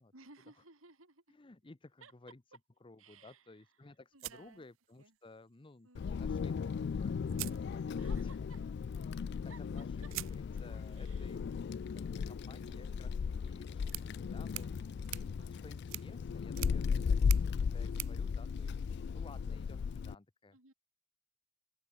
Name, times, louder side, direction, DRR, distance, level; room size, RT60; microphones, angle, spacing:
voice 1, 0.1-1.4 2.0-2.1 3.0-3.7 4.1-4.7 5.0-5.2 5.8-6.1 8.0-8.6 9.4-9.8 10.9-11.4 12.5-12.8 15.4-15.7 20.5-20.7, right 3 dB, 85° right, 4.1 m, -58 dB
voice 2, 1.3-2.4 2.8-8.3 9.1-11.4 11.9-14.7 15.4-20.6, left 2 dB, 25° left, 0.7 m, -57 dB
sound 1, 4.2-5.3 6.7-6.8 7.3-8.3 10.1-19.3, right 20 dB, 65° right, 0.3 m, -48 dB
Wind, 6.0-20.1, left 6 dB, 55° left, 0.3 m, -36 dB
open air
head